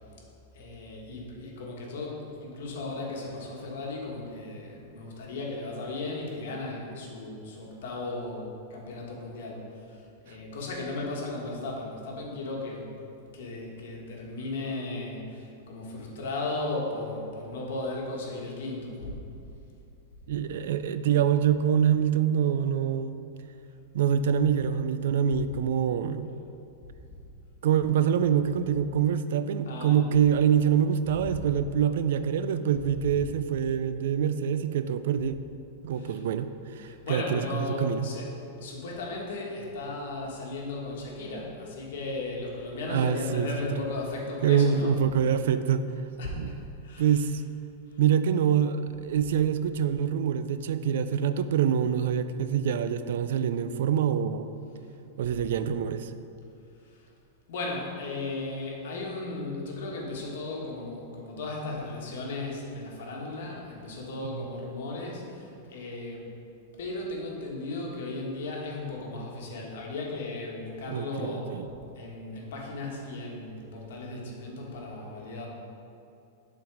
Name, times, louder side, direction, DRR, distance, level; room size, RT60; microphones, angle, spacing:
voice 1, 0.5-12.9 13.3-19.2 29.6-30.0 31.1-31.4 35.9-36.2 36.8-38.3 38.6-45.0 46.2-47.2 47.9-48.0 56.8-57.0 57.5-66.3 66.8-71.6 71.9-75.5, left 2 dB, 70° left, -2 dB, 1.5 m, -36 dB
voice 2, 20.3-23.2 23.9-26.3 27.6-35.4 35.8-36.5 36.8-38.1 42.9-43.5 44.4-45.8 46.4-46.5 46.8-47.4 48.0-54.5 55.2-56.1 64.3-64.4 70.9-71.7, right 8 dB, 70° right, 11 dB, 0.3 m, -25 dB
7.0 x 4.0 x 4.8 m, 2.6 s
supercardioid pair, 150°, 0 cm